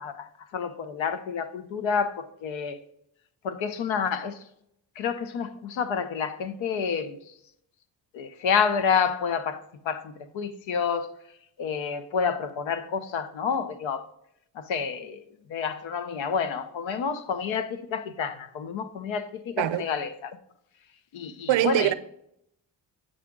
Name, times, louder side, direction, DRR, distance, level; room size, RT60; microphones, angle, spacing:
voice 1, 0.0-2.8 3.4-4.4 5.0-7.3 8.1-11.1 11.6-14.1 14.5-15.2 15.5-20.4 21.1-21.9, left 6 dB, 85° left, 0.7 m, -29 dB
voice 2, 21.5-21.9, right 14 dB, 80° right, 0.6 m, -23 dB
8.1 x 5.0 x 3.7 m
cardioid pair, 85°, 45 cm